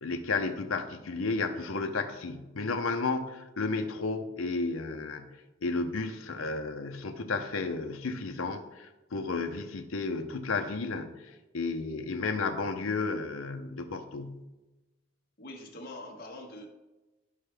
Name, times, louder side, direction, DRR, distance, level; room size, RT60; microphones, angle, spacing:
voice 1, 0.0-14.5, left 3 dB, 85° left, 6 dB, 0.7 m, -33 dB
voice 2, 15.4-16.7, left 1 dB, 45° left, -1 dB, 1.4 m, -43 dB
13.0 x 4.6 x 3.4 m, 1.1 s
head